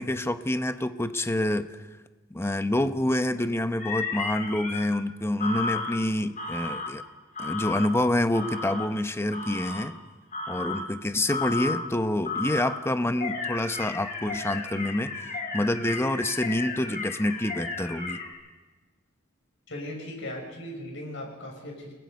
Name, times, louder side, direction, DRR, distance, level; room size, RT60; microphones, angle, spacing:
voice 1, 0.0-1.8 2.3-7.0 7.4-10.0 10.5-15.1 15.5-18.2, left 1 dB, 15° left, 10 dB, 0.9 m, -27 dB
sound 1, 3.8-4.8 5.4-5.9 6.4-6.9 7.3-7.9 8.3-8.9 9.3-9.9 10.3-10.8 11.3-11.8 12.2-12.8 13.2-18.3, left 3 dB, 40° left, 3.6 m, -33 dB
voice 2, 19.7-21.9, left 1 dB, 70° left, 1 dB, 6.7 m, -38 dB
28.5 x 20.0 x 5.4 m, 1.2 s
head